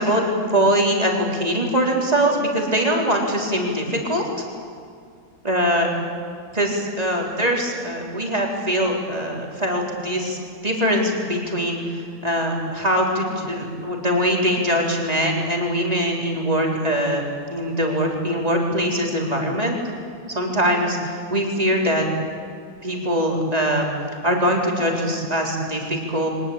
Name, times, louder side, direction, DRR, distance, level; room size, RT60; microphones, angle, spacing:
voice 1, 0.0-4.3 5.4-5.9 6.5-10.4 10.6-17.2 17.5-19.8 20.3-22.3 22.8-23.9 24.2-26.3, equal, 20° right, 0 dB, 3.8 m, -22 dB
23.0 x 20.5 x 8.7 m, 2.2 s
omnidirectional pair, 2.0 m